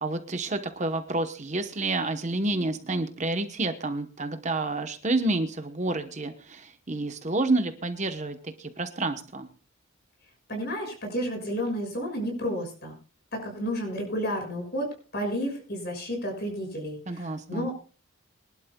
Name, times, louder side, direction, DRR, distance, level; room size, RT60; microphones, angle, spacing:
voice 1, 0.0-9.5 17.1-17.7, right 2 dB, 35° right, 7 dB, 1.0 m, -29 dB
voice 2, 10.5-12.9 13.3-14.9 15.1-17.7, equal, 50° left, 3 dB, 6.3 m, -31 dB
23.5 x 12.0 x 2.3 m, 0.38 s
head